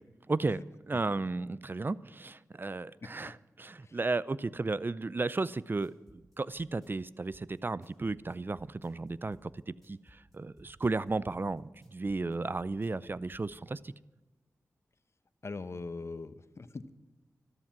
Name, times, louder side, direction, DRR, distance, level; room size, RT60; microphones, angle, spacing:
voice 1, 0.3-9.5 9.9-10.0 10.3-13.9, right 3 dB, 35° right, 20 dB, 0.5 m, -34 dB
voice 2, 3.0-3.3 3.8-4.0 15.4-16.9, left 3 dB, 50° left, 14 dB, 0.9 m, -42 dB
sound 1, 5.6-13.5, left 1 dB, 5° left, 5.1 m, -60 dB
13.0 x 12.5 x 6.1 m, 1.1 s
cardioid pair, 40°, 6 cm